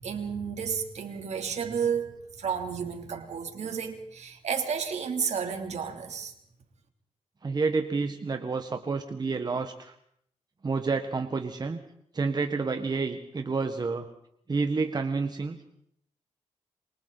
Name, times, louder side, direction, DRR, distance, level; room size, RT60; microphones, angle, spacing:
voice 1, 0.0-6.3, right 6 dB, 70° right, 4 dB, 3.2 m, -32 dB
voice 2, 7.4-9.9 10.6-11.8 12.1-14.1 14.5-15.6, right 4 dB, 35° right, 6 dB, 1.4 m, -29 dB
27.5 x 24.0 x 4.1 m, 0.70 s
cardioid pair, 100°, 12 cm